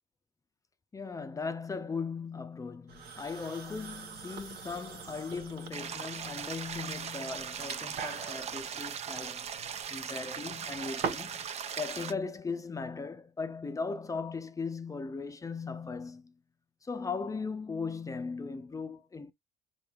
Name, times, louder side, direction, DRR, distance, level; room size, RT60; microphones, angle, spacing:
voice 1, 0.9-9.5 9.9-11.4 11.8-16.3 16.8-19.3, left 4 dB, 20° left, 0.5 m, -38 dB
sound 1, 2.9-11.5, right 6 dB, 75° right, 1.0 m, -43 dB
sound 2, 5.7-12.1, right 7 dB, 40° right, 0.5 m, -39 dB
5.5 x 3.4 x 2.3 m
cardioid pair, 110°, 17 cm